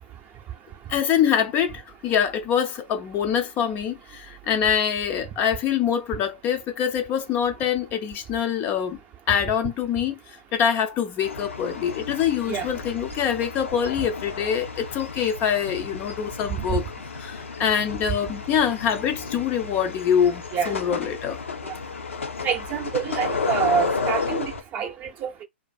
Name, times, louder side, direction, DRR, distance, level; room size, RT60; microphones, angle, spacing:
voice 1, 0.9-9.0 9.3-10.2 10.5-16.8 17.2-21.4, left 8 dB, 30° left, 0.4 m, -24 dB
sound 1, 11.2-24.6, left 4 dB, 85° left, 0.6 m, -32 dB
voice 2, 22.4-25.4, right 7 dB, 25° right, 0.6 m, -27 dB
2.6 x 2.5 x 2.4 m
hypercardioid pair, 125°, 7 cm